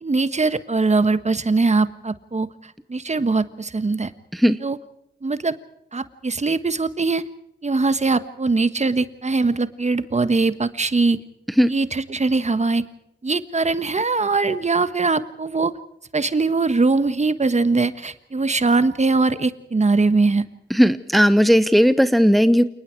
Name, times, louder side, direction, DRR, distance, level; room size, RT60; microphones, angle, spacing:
voice 1, 0.0-2.5 2.9-4.1 4.6-4.8 5.2-5.6 5.9-7.2 7.6-11.2 11.7-12.8 13.2-15.7 16.1-20.4, right 3 dB, 40° right, 12 dB, 1.4 m, -21 dB
voice 2, 20.7-22.6, equal, ahead, 12 dB, 1.0 m, -16 dB
28.5 x 20.0 x 4.6 m, 0.76 s
wide cardioid pair, 75°, 19 cm